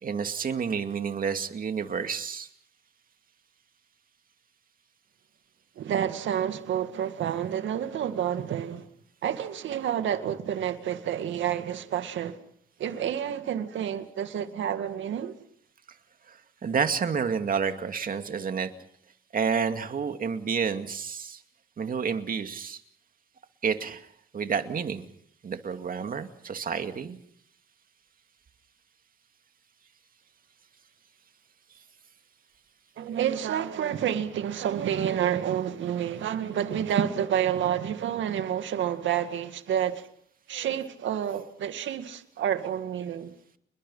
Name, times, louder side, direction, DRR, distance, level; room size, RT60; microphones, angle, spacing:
voice 1, 0.0-2.5 16.3-18.7 19.3-21.4 21.8-22.8 23.6-24.1 24.3-25.0 25.4-27.2, right 6 dB, 45° right, 2.4 m, -29 dB
voice 2, 5.8-8.9 9.2-12.4 12.8-15.4 33.0-40.1 40.5-43.3, right 9 dB, 70° right, 2.1 m, -29 dB
30.0 x 21.5 x 5.7 m
cardioid pair, 90°, 20 cm